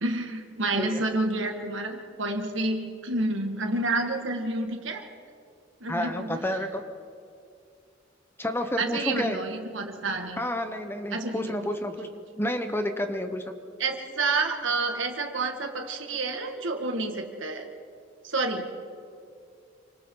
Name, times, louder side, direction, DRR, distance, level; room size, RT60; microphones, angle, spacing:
voice 1, 0.0-5.0 5.8-6.4 8.8-10.4 11.1-11.4 13.8-17.7 18.2-18.7, right 2 dB, 75° right, 4 dB, 1.9 m, -29 dB
voice 2, 5.9-6.8 8.4-9.4 10.4-12.1 12.4-13.4, left 1 dB, 10° left, 7 dB, 1.1 m, -30 dB
28.5 x 25.5 x 3.9 m, 2.4 s
head